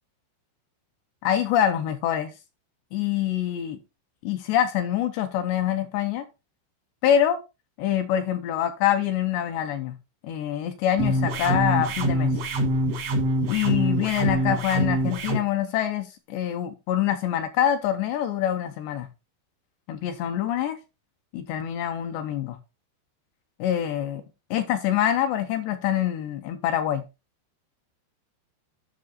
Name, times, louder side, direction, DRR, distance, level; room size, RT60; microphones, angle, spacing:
voice 1, 1.2-2.3 2.9-3.8 4.2-6.2 7.0-7.4 7.8-9.9 10.2-12.3 13.5-19.1 19.9-20.8 21.3-22.6 23.6-24.2 24.5-27.0, left 10 dB, 75° left, 2.7 m, -25 dB
sound 1, 11.0-15.4, right 1 dB, 80° right, 1.4 m, -24 dB
10.5 x 6.1 x 4.0 m
omnidirectional pair, 5.6 m